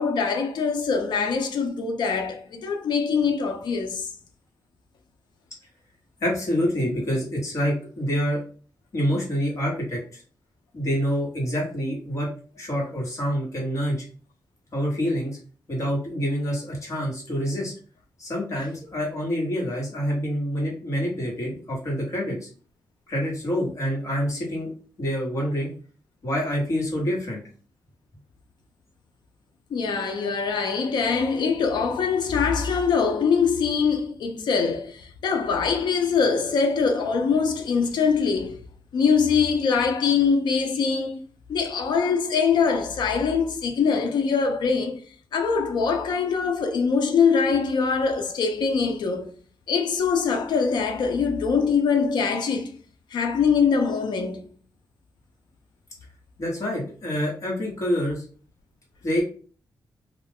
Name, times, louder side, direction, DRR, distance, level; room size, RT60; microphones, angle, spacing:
voice 1, 0.0-4.1 29.7-38.6 38.9-41.2 41.5-45.0 45.3-49.3 49.7-52.8 53.1-54.5, left 5 dB, 85° left, 0.5 m, -23 dB
voice 2, 6.2-8.4 8.9-10.2 10.7-12.3 12.6-14.0 14.7-15.4 15.7-17.7 18.2-22.5 23.1-24.7 25.0-25.7 26.2-27.4 56.4-58.2 59.0-59.2, equal, 45° left, 1.3 m, -26 dB
2.4 x 2.3 x 3.4 m
wide cardioid pair, 155°, 7 cm